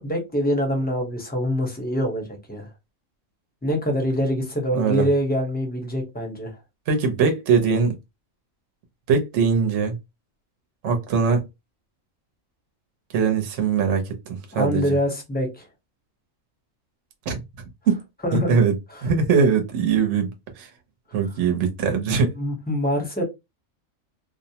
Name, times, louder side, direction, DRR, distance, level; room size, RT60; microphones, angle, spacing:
voice 1, 0.0-2.7 3.6-6.5 14.5-15.6 18.2-18.6 22.4-23.2, equal, 10° left, 0.6 m, -24 dB
voice 2, 4.7-5.1 6.9-7.9 9.1-10.0 10.8-11.4 13.1-14.8 17.3-17.4 17.9-18.0 18.3-18.7 19.0-20.7 21.1-22.3, right 5 dB, 65° right, 1.0 m, -21 dB
2.5 x 2.0 x 2.7 m
omnidirectional pair, 1.4 m